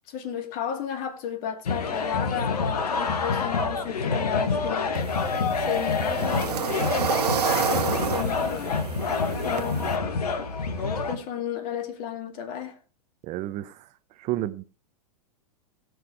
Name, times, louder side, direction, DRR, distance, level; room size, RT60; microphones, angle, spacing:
voice 1, 0.1-5.0 5.6-7.0 7.6-8.7 9.4-10.0 11.1-12.8, left 8 dB, 45° left, 2.2 m, -33 dB
sound 1, 1.6-11.1, left 4 dB, 80° left, 1.6 m, -27 dB
sound 2, 4.9-10.0, right 7 dB, 80° right, 1.2 m, -29 dB
voice 2, 13.2-13.9 14.2-14.6, right 15 dB, 35° right, 0.6 m, -32 dB
17.0 x 6.2 x 4.8 m
hypercardioid pair, 110°, 20 cm